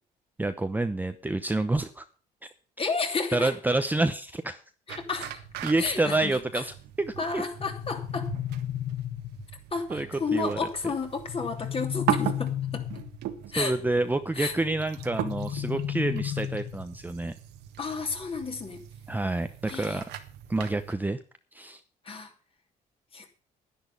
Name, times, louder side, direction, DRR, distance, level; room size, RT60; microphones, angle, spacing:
voice 1, 0.4-2.0 3.3-4.6 5.6-7.4 9.9-10.6 13.6-17.3 19.1-20.1 20.5-21.2 21.5-21.8, right 2 dB, 10° right, 0.8 m, -28 dB
voice 2, 2.8-3.5 4.9-5.5 5.8-6.4 7.2-8.3 9.7-12.8 13.5-13.7 14.3-14.5 17.8-18.8 19.7-20.0 22.0-22.3 23.1-23.3, left 4 dB, 35° left, 2.9 m, -31 dB
sound 1, 4.9-20.9, right 12 dB, 80° right, 1.6 m, -38 dB
sound 2, 7.6-9.6 11.3-13.3 15.0-17.0, left 12 dB, 60° left, 0.6 m, -33 dB
10.5 x 10.5 x 5.4 m
cardioid pair, 110°, 17 cm